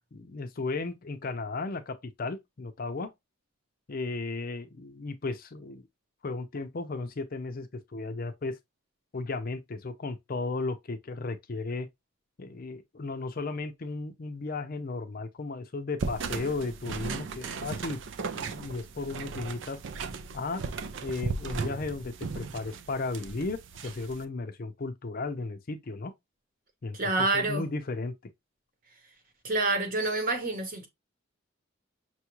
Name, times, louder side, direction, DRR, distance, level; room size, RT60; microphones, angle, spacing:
voice 1, 0.1-3.1 3.9-5.9 6.2-8.6 9.1-11.9 12.4-18.0 18.3-19.8 20.3-20.6 21.0-26.1 26.8-28.2, left 3 dB, 45° left, 0.5 m, -35 dB
sound 1, 16.0-24.2, right 4 dB, 60° right, 0.4 m, -36 dB
voice 2, 26.9-27.6 29.4-30.9, right 3 dB, 45° right, 1.0 m, -27 dB
6.0 x 2.3 x 3.0 m
head